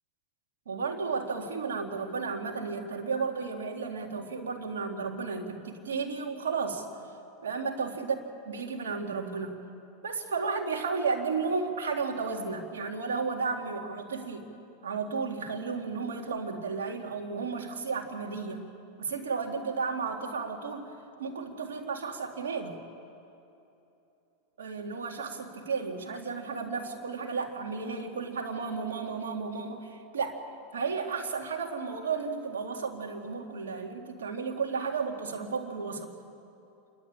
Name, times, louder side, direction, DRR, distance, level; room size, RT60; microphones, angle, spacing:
voice 1, 0.7-6.8 7.4-8.2 8.5-9.5 10.0-14.5 14.8-18.6 19.0-20.9 21.2-22.8 24.6-30.4 30.7-36.1, right 5 dB, 85° right, 2 dB, 2.4 m, -33 dB
28.0 x 12.0 x 8.8 m, 2.8 s
hypercardioid pair, 110°, 0 cm